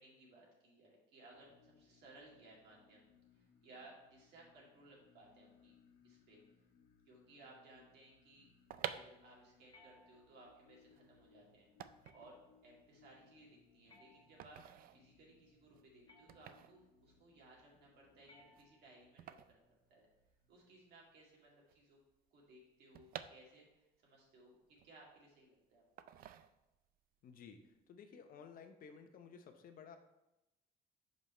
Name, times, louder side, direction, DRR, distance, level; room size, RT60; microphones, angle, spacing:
voice 1, 0.0-3.0 3.3-5.7 6.0-6.4 7.1-8.5 8.9-11.7 12.1-12.3 12.6-14.6 14.9-20.1 20.5-22.0 22.3-24.6 24.8-25.8, right 2 dB, 75° right, -2 dB, 2.2 m, -62 dB
sound 1, 1.3-21.0, left 6 dB, 80° left, 1.2 m, -70 dB
sound 2, 8.4-20.6 20.8-20.9 21.1-24.0 24.4-25.4 26.0-27.0 27.3-27.6, right 10 dB, 60° right, 0.4 m, -51 dB
sound 3, 9.7-10.6 12.0-12.6 13.9-14.8 16.1-16.8 18.2-19.1, left 2 dB, 25° left, 1.0 m, -66 dB
voice 2, 27.2-30.0, left 6 dB, 55° left, 7 dB, 0.8 m, -55 dB
5.3 x 5.2 x 4.3 m, 0.95 s
cardioid pair, 110°, 17 cm